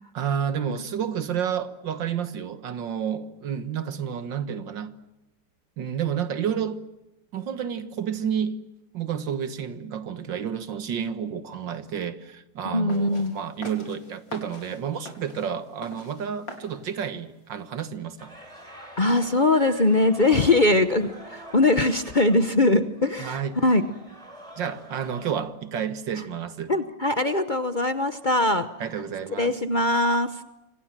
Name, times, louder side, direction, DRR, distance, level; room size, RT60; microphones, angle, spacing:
voice 1, 0.1-5.0 5.8-6.8 7.3-8.6 8.9-18.3 23.2-23.6 24.6-26.7 28.8-29.6, right 8 dB, 80° right, 2.1 m, -30 dB
voice 2, 12.7-13.3 19.0-23.8 26.7-28.7 29.4-30.3, left 2 dB, 35° left, 0.9 m, -21 dB
sound 1, 12.9-17.9, left 2 dB, 85° left, 4.7 m, -44 dB
sound 2, 18.2-25.3, right 1 dB, 15° right, 5.9 m, -45 dB
27.5 x 25.5 x 7.5 m
omnidirectional pair, 2.0 m